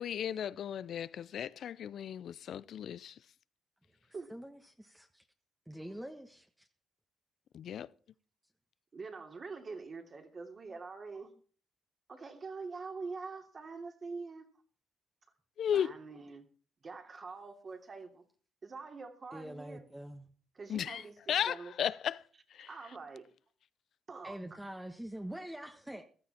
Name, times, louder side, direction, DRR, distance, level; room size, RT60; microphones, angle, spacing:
voice 1, 0.0-3.1 7.5-7.9 15.6-15.9 20.7-21.0 21.3-22.2 22.5-22.7, left 9 dB, 65° left, 0.6 m, -35 dB
voice 2, 4.1-5.2 5.7-6.7 19.3-20.3 24.2-26.0, right 1 dB, 5° right, 1.4 m, -45 dB
voice 3, 8.9-11.3 12.1-14.5 15.7-16.4 16.8-18.2 18.6-19.8 20.5-21.9 22.7-23.2 24.1-24.4, right 4 dB, 40° right, 3.0 m, -45 dB
15.5 x 13.5 x 4.3 m
cardioid pair, 90°, 0 cm